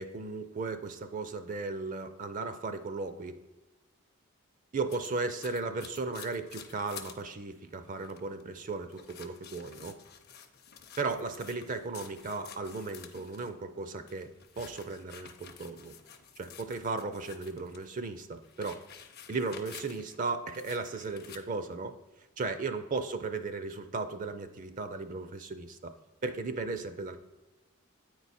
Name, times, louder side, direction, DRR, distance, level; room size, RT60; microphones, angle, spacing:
voice 1, 0.0-3.4 4.7-10.0 11.0-14.3 14.6-15.9 16.4-18.7 19.3-21.9 22.4-25.9 26.2-27.2, right 3 dB, 35° right, 9 dB, 0.4 m, -36 dB
sound 1, 4.9-7.2 7.6-7.7 8.0-8.4 8.9-13.6 14.0-17.9 18.2-20.2 20.5-21.4, left 8 dB, 45° left, 0.7 m, -50 dB
8.7 x 4.7 x 4.1 m, 1.2 s
head